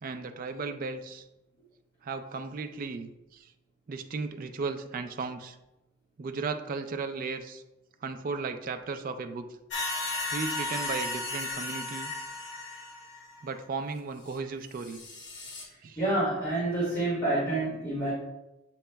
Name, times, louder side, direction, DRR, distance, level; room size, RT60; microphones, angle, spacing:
voice 1, 0.0-1.3 2.0-3.5 3.9-5.6 6.2-7.6 8.0-9.5 10.3-12.1 13.4-15.0 15.8-16.0, right 4 dB, 40° right, 7 dB, 0.3 m, -35 dB
sound 1, 9.7-13.4 14.3-14.4 14.8-15.6, left 2 dB, 60° left, 0.9 m, -35 dB
voice 2, 16.0-18.1, right 2 dB, 10° left, -11 dB, 1.5 m, -28 dB
7.7 x 2.9 x 2.2 m, 0.94 s
head